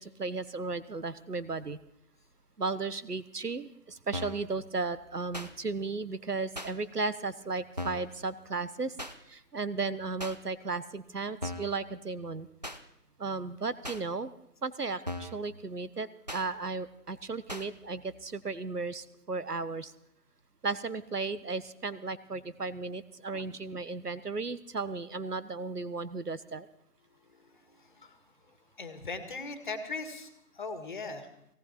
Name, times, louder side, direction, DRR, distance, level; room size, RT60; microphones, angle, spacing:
voice 1, 0.0-1.8 2.6-9.0 9.3-12.5 13.2-14.3 14.6-19.9 20.6-26.7, right 3 dB, 80° right, 17 dB, 1.4 m, -35 dB
sound 1, 4.1-4.5 5.3-5.5 6.5-6.7 7.8-8.1 9.0-9.1 10.2-10.4 11.4-11.8 12.6-12.8 13.8-14.0 15.0-15.4 16.3-16.4 17.5-17.7, left 1 dB, 30° right, 0.7 m, -38 dB
voice 2, 27.5-28.2 28.8-31.3, left 3 dB, 30° left, 9 dB, 1.8 m, -40 dB
18.0 x 18.0 x 4.4 m, 0.79 s
figure-of-eight pair, 155°, 46 cm